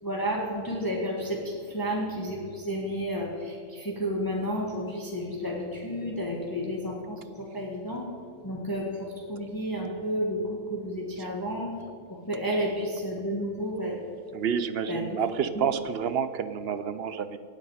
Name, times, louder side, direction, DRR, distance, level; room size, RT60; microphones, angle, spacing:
voice 1, 0.0-8.1 8.4-11.7 12.1-14.0 14.9-15.0 15.6-15.7, equal, 15° left, -3 dB, 1.8 m, -31 dB
voice 2, 14.3-17.4, right 7 dB, 60° right, 12 dB, 0.7 m, -29 dB
18.5 x 7.8 x 5.0 m, 2.3 s
omnidirectional pair, 1.5 m